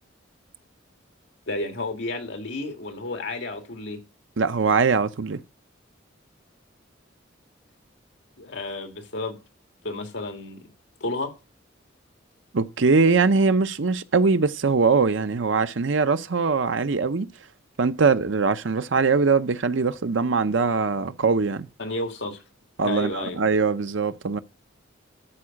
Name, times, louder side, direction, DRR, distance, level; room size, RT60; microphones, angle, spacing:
voice 1, 1.5-4.0 8.4-9.4 9.8-10.6 11.0-11.3 21.8-22.4 22.8-23.4, left 2 dB, 65° left, 1.9 m, -31 dB
voice 2, 4.4-5.4 12.5-17.3 17.8-21.7 22.8-24.4, right 4 dB, 70° right, 0.7 m, -22 dB
13.0 x 4.9 x 6.4 m
head